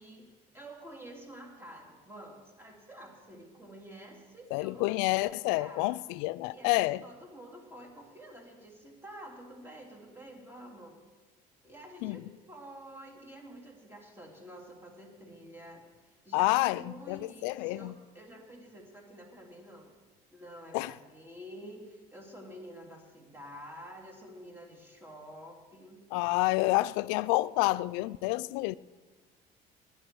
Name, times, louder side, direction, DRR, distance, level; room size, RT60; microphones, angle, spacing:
voice 1, 0.0-6.0 6.5-11.0 11.6-12.2 12.5-20.0 20.3-26.0, right 1 dB, 10° right, 3.1 m, -49 dB
voice 2, 4.5-7.0 12.0-12.2 16.3-17.9 20.7-20.9 26.1-28.7, left 20 dB, 85° left, 0.4 m, -29 dB
20.5 x 8.5 x 6.2 m
supercardioid pair, 100°, 18 cm